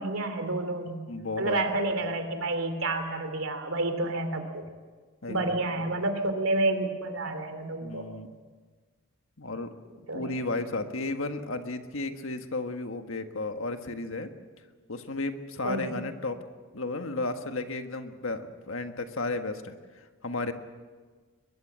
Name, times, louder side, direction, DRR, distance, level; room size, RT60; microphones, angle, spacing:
voice 1, 0.0-1.0 1.4-4.6 5.3-8.1 10.1-10.3 15.6-16.0, right 2 dB, 75° right, 7 dB, 3.0 m, -29 dB
voice 2, 1.1-1.6 5.2-5.9 7.8-8.3 9.4-9.7 10.1-14.3 14.9-16.4 16.7-19.8 20.2-20.5, left 2 dB, 70° left, 7 dB, 1.6 m, -33 dB
22.5 x 22.0 x 7.6 m, 1.4 s
head